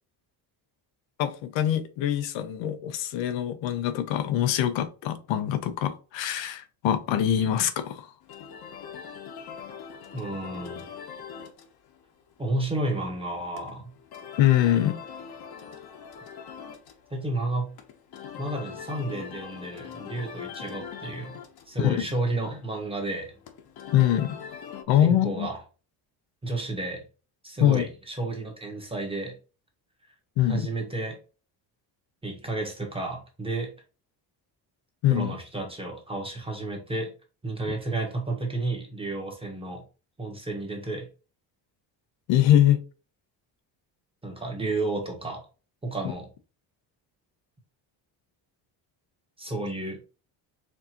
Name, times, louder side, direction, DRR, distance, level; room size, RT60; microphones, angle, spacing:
voice 1, 1.2-8.1 14.4-15.0 21.8-22.1 23.9-24.4 24.9-25.5 27.6-27.9 30.4-30.7 35.0-35.3 42.3-42.8, left 11 dB, 90° left, 0.7 m, -23 dB
sound 1, 8.2-24.8, left 7 dB, 55° left, 0.9 m, -43 dB
voice 2, 10.1-10.9 12.4-13.9 17.1-17.7 18.4-21.4 21.7-23.3 25.0-25.6 26.4-27.0 27.4-29.4 30.4-31.2 32.2-33.7 35.1-37.1 37.4-39.8 40.2-41.1 44.2-45.4 45.8-46.3 49.4-50.0, right 2 dB, 10° right, 1.1 m, -31 dB
4.5 x 2.7 x 2.9 m
cardioid pair, 125°, 44 cm